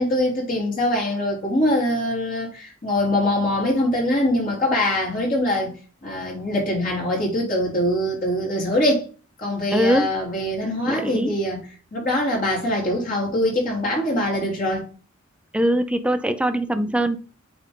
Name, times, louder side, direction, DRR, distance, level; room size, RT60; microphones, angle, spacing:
voice 1, 0.0-5.8 6.0-9.1 9.4-11.6 11.9-14.9, left 1 dB, 45° left, 3.1 m, -23 dB
voice 2, 9.7-10.1 10.9-11.3 15.5-17.2, right 1 dB, 5° right, 0.6 m, -21 dB
8.6 x 3.5 x 3.8 m
head